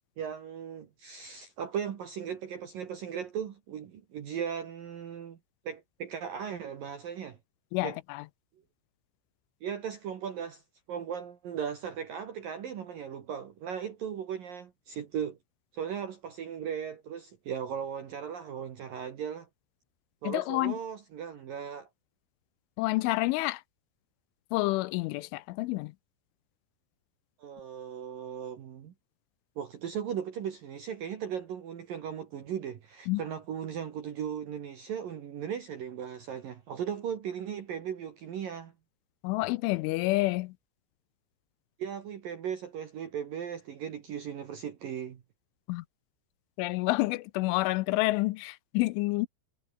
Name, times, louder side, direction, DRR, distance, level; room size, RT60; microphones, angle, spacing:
voice 1, 0.2-5.4 5.6-7.4 7.8-8.0 9.6-10.6 10.9-15.4 15.7-19.5 20.2-21.9 27.4-28.9 29.6-38.7 41.8-45.2, right 8 dB, 55° right, 2.8 m, -37 dB
voice 2, 7.7-8.2 20.3-20.7 22.8-23.6 24.5-25.9 33.1-33.2 39.2-40.5 45.7-45.8 46.6-49.3, left 21 dB, 80° left, 2.9 m, -28 dB
omnidirectional pair, 5.9 m